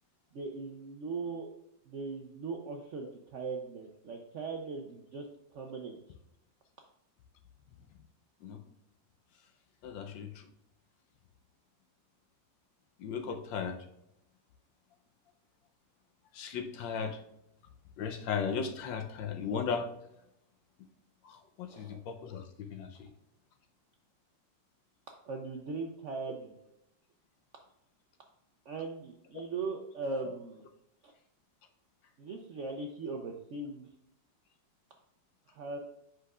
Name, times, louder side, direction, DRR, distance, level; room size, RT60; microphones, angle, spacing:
voice 1, 0.3-1.5 1.9-6.0 21.7-22.0 25.2-26.5 28.7-30.7 31.0-31.1 32.2-33.9 35.5-35.8, right 4 dB, 75° right, 2 dB, 0.7 m, -39 dB
voice 2, 9.8-10.3 13.0-13.8 16.3-17.2 18.0-19.9 21.2-22.4 22.7-23.1, left 6 dB, 85° left, 6 dB, 1.5 m, -36 dB
7.7 x 5.7 x 2.4 m, 0.80 s
omnidirectional pair, 2.0 m